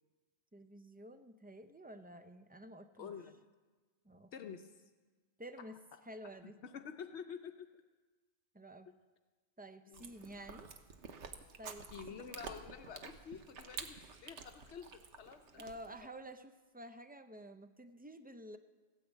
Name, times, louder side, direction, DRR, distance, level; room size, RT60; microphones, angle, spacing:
voice 1, 0.5-3.1 4.0-4.5 5.4-5.8 6.1-6.6 8.5-8.9 9.6-10.7 11.6-12.6 15.5-18.6, right 1 dB, 15° right, 9 dB, 0.4 m, -51 dB
voice 2, 3.0-3.4 4.3-4.7 6.4-7.8 9.9-10.1 11.9-15.6, left 7 dB, 75° left, 6 dB, 1.0 m, -49 dB
Chewing mastication, 9.9-16.1, right 5 dB, 80° right, 1.3 m, -50 dB
15.5 x 9.6 x 8.3 m, 1.3 s
omnidirectional pair, 1.2 m